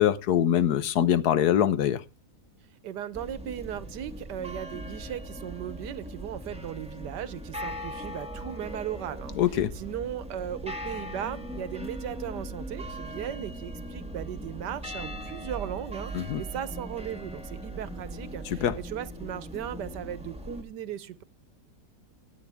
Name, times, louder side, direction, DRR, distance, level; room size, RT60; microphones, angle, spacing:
voice 1, 0.0-2.0 9.4-9.7 16.1-16.4 18.5-18.8, left 10 dB, 70° left, 1.3 m, -23 dB
voice 2, 2.8-9.3 9.7-21.2, right 10 dB, 75° right, 1.4 m, -37 dB
sound 1, 3.1-20.6, right 1 dB, 5° right, 1.4 m, -39 dB
16.5 x 9.4 x 3.5 m
omnidirectional pair, 1.9 m